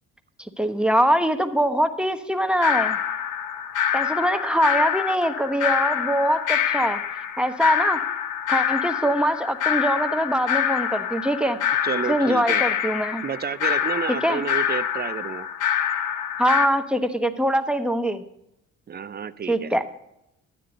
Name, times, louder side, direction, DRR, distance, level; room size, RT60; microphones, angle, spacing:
voice 1, 0.4-3.0 3.9-7.0 7.4-8.0 8.5-11.6 12.1-13.2 14.2-14.4 16.4-18.2 19.5-19.8, equal, 5° right, 7 dB, 1.0 m, -23 dB
sound 1, 2.6-16.7, left 9 dB, 90° left, 0.9 m, -26 dB
voice 2, 11.8-12.6 13.2-15.5 18.9-19.7, right 7 dB, 35° right, 13 dB, 0.6 m, -30 dB
12.0 x 9.5 x 3.9 m, 0.84 s
cardioid pair, 90°, 30 cm